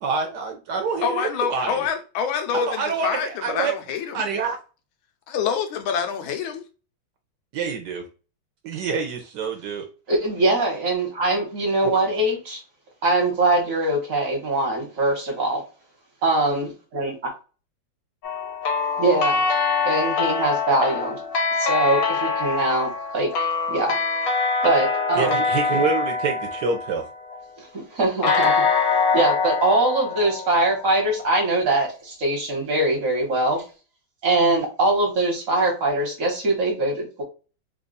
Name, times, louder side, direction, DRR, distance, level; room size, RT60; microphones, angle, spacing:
voice 1, 0.0-1.9 2.6-3.7 4.1-4.6 7.5-8.0 8.6-9.9 11.8-11.9 25.1-27.1, right 5 dB, 65° right, 1.1 m, -26 dB
voice 2, 1.0-4.2 5.3-6.6, left 7 dB, 90° left, 1.5 m, -26 dB
voice 3, 10.1-12.6 13.0-15.6 16.2-17.1 19.0-19.4 19.8-21.2 21.6-23.3 23.7-24.0 24.6-25.4 27.6-28.6 29.1-33.6 34.2-37.2, right 2 dB, 50° right, 1.3 m, -22 dB
sound 1, 18.2-27.4 28.2-31.1, left 5 dB, 60° left, 1.0 m, -24 dB
3.6 x 2.3 x 3.9 m
omnidirectional pair, 2.2 m